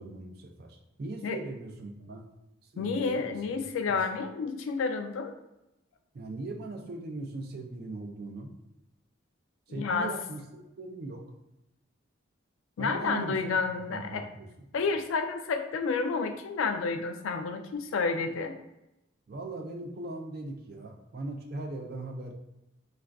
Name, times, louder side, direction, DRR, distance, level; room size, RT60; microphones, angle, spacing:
voice 1, 0.0-2.3 2.7-4.0 6.1-8.5 9.7-11.3 12.8-13.5 13.9-14.7 19.3-22.3, right 2 dB, 50° right, 4 dB, 0.4 m, -39 dB
voice 2, 2.8-5.3 9.7-10.1 12.8-14.3 14.7-18.6, left 4 dB, 85° left, 7 dB, 0.3 m, -30 dB
2.4 x 2.3 x 3.3 m, 0.91 s
head